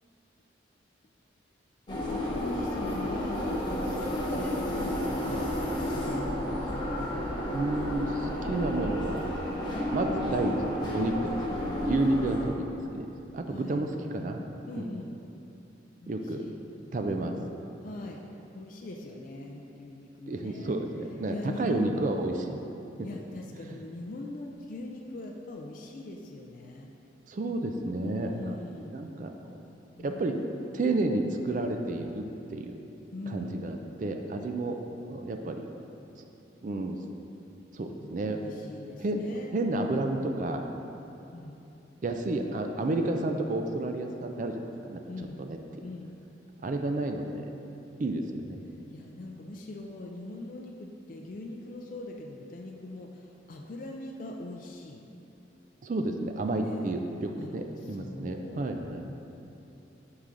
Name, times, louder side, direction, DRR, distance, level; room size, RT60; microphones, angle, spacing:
voice 1, 1.9-6.3 12.0-12.2 13.5-13.8 14.7-15.1 16.0-16.6 17.8-18.2 18.5-20.8 21.3-22.0 23.0-26.9 28.0-29.0 29.9-30.6 33.1-33.6 38.0-39.5 41.3-41.6 45.1-45.4 45.8-46.1 48.9-55.0 56.6-56.9 57.4-58.7, left 2 dB, 45° left, 1 dB, 0.4 m, -41 dB
sound 1, 1.9-12.5, left 1 dB, 25° left, 0.8 m, -31 dB
voice 2, 7.5-9.2 9.6-13.1 13.3-14.4 14.7-14.9 16.1-16.5 16.9-17.3 20.3-22.6 23.6-23.8 27.3-28.6 28.9-29.4 30.0-30.4 30.7-32.8 33.3-34.8 35.1-35.7 36.6-37.0 37.7-38.4 39.0-39.2 39.5-40.6 42.0-45.0 45.4-45.6 46.6-47.5 48.0-48.6 55.8-59.1, right 2 dB, 45° right, 4 dB, 0.4 m, -31 dB
7.0 x 4.8 x 3.8 m, 2.9 s
head